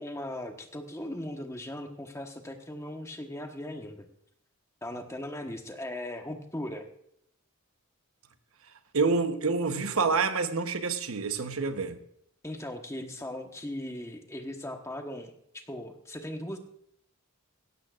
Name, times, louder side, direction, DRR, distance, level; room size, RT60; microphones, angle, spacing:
voice 1, 0.0-4.1 4.8-6.9 12.4-16.6, left 1 dB, 15° left, 1.2 m, -38 dB
voice 2, 8.9-12.0, right 4 dB, 75° right, 1.0 m, -27 dB
16.5 x 15.0 x 2.5 m
head